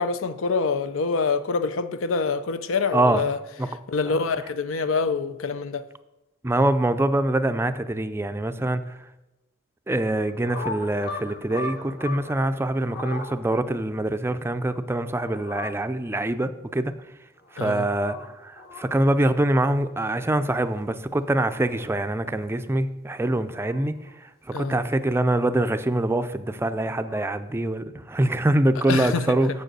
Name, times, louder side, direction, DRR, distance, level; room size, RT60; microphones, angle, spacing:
voice 1, 0.0-3.4 3.9-5.8 17.6-17.9 24.5-24.8 28.9-29.4, left 4 dB, 80° left, 0.5 m, -26 dB
voice 2, 2.9-3.2 6.4-8.8 9.9-16.9 17.6-23.9 24.6-29.5, right 1 dB, 10° right, 0.4 m, -24 dB
sound 1, 10.2-12.3 12.7-13.3 15.0-15.7 17.4-18.3 18.6-18.8 20.9-21.6 23.2-24.1 26.5-27.3, left 3 dB, 50° left, 1.5 m, -38 dB
7.1 x 6.4 x 6.8 m
head